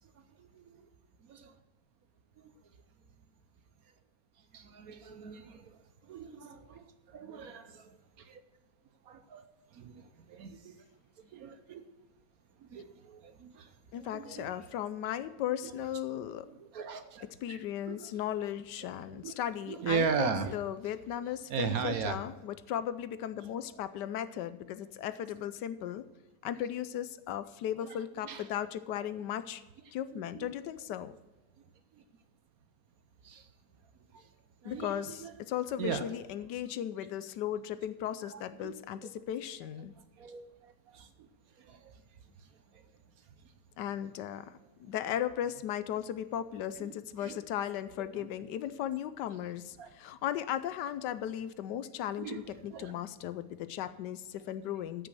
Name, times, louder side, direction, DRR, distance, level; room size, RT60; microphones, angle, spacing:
voice 1, 0.4-0.8 1.3-1.5 2.4-2.5 4.5-8.4 9.1-9.4 9.7-10.8 11.3-11.8 12.6-14.6 15.6-15.7 16.4-17.6 17.9-18.1 18.8-19.4 19.7-20.5 21.5-22.2 27.8-27.9 28.2-28.4 30.1-30.5 33.2-33.5 34.1-34.3 34.6-35.3 35.7-36.0 38.3-38.7 40.2-41.1 41.6-42.0 46.8-46.9 47.2-47.4 48.2-48.3 49.8-49.9 52.2-52.9, right 6 dB, 65° right, 10 dB, 1.1 m, -39 dB
voice 2, 13.9-16.5 17.4-26.0 26.4-29.6 29.9-31.2 34.6-39.9 43.8-55.1, left 10 dB, 80° left, 13 dB, 1.2 m, -36 dB
13.5 x 6.1 x 6.5 m, 1.1 s
omnidirectional pair, 1.9 m